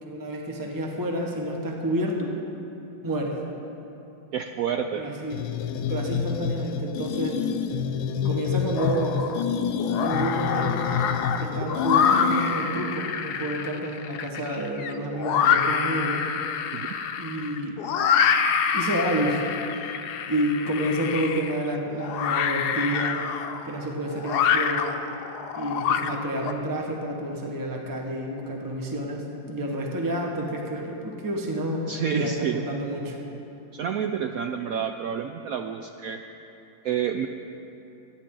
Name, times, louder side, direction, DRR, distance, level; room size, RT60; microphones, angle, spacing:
voice 1, 0.0-2.3 3.0-3.4 5.0-5.4 5.9-7.4 8.2-9.3 10.0-10.8 11.4-16.3 17.2-17.9 18.7-19.4 20.3-23.2 23.6-25.0 25.6-31.9 32.1-33.2, right 1 dB, 15° right, 0 dB, 1.1 m, -29 dB
voice 2, 4.3-5.0 16.7-16.9 31.9-32.6 33.7-36.2 36.8-37.3, right 8 dB, 85° right, 6 dB, 0.7 m, -29 dB
crunchy space, 5.3-12.8, left 7 dB, 90° left, 1.4 m, -28 dB
Monster Screaching, 8.8-9.4 9.8-26.5, left 7 dB, 65° left, 1.1 m, -26 dB
25.0 x 10.5 x 3.8 m, 3.0 s
omnidirectional pair, 2.1 m